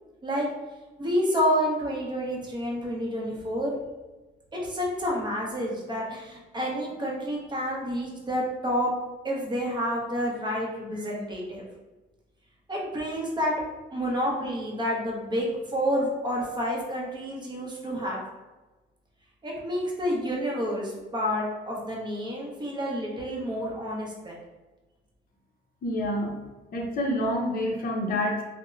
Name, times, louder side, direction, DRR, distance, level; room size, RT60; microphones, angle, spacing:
voice 1, 1.0-3.7 4.5-8.9 9.2-11.6 12.7-13.5 13.9-18.2 19.4-24.4, equal, 20° right, -2 dB, 0.7 m, -29 dB
voice 2, 25.8-26.4 26.7-28.4, left 1 dB, 45° left, -1 dB, 0.5 m, -27 dB
2.8 x 2.0 x 2.3 m, 1.1 s
cardioid pair, 90°, 20 cm